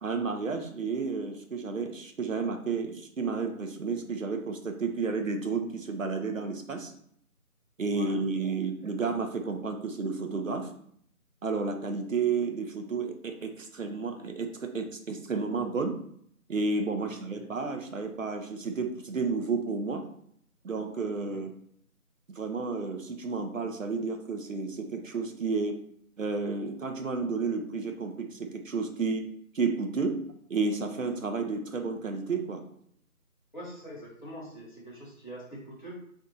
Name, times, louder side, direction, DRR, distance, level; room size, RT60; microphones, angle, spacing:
voice 1, 0.0-6.9 7.8-10.7 11.4-16.0 16.5-20.1 20.6-21.5 22.3-25.7 26.2-29.2 29.5-30.2 30.5-32.6, right 4 dB, 60° right, 5 dB, 0.5 m, -31 dB
voice 2, 7.9-8.2 17.0-17.5 21.3-21.4 33.5-36.0, equal, 35° left, -6 dB, 1.0 m, -44 dB
2.6 x 2.3 x 3.9 m, 0.65 s
figure-of-eight pair, 165°, 44 cm